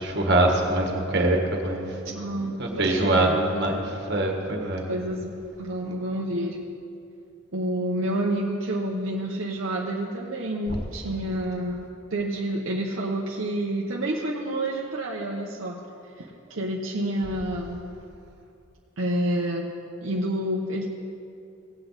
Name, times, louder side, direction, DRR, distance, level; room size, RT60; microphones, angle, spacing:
voice 1, 0.0-1.8 2.3-3.8 4.1-4.8, right 1 dB, 55° right, 2 dB, 1.6 m, -23 dB
voice 2, 2.0-3.3 4.9-6.6 7.5-15.8 16.2-17.8 19.0-19.7 20.0-20.9, right 1 dB, 75° right, -2 dB, 0.8 m, -29 dB
17.5 x 8.0 x 4.0 m, 2.6 s
head